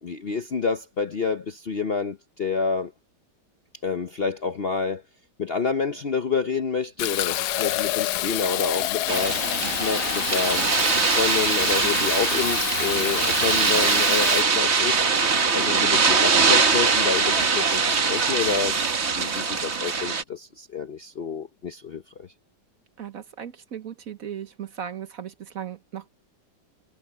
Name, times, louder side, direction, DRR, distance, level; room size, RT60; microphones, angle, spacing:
voice 1, 0.0-2.9 3.8-5.0 5.4-9.4 9.8-10.6 11.1-15.0 15.5-18.8 19.1-22.3, left 5 dB, 50° left, 0.7 m, -28 dB
Fill (with liquid), 7.0-14.4, left 14 dB, 70° left, 1.1 m, -28 dB
sound 1, 9.1-20.2, right 5 dB, 40° right, 1.6 m, -22 dB
voice 2, 23.0-26.1, right 9 dB, 55° right, 1.3 m, -37 dB
omnidirectional pair, 1.9 m